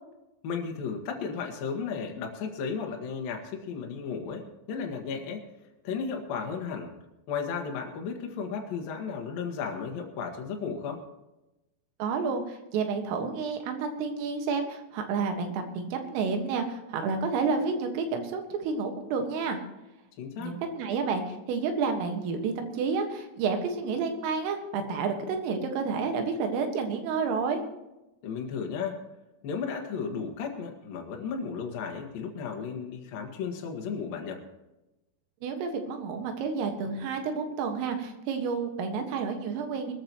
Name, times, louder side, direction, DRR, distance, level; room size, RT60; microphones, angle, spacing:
voice 1, 0.4-5.4 5.8-6.9 7.3-11.0 20.2-20.5 28.2-29.0 29.4-34.4, left 6 dB, 60° left, 2 dB, 2.9 m, -34 dB
voice 2, 12.0-19.6 20.4-27.6 35.4-39.9, right 5 dB, 85° right, 5 dB, 4.3 m, -30 dB
21.5 x 14.0 x 3.1 m, 0.96 s
omnidirectional pair, 5.7 m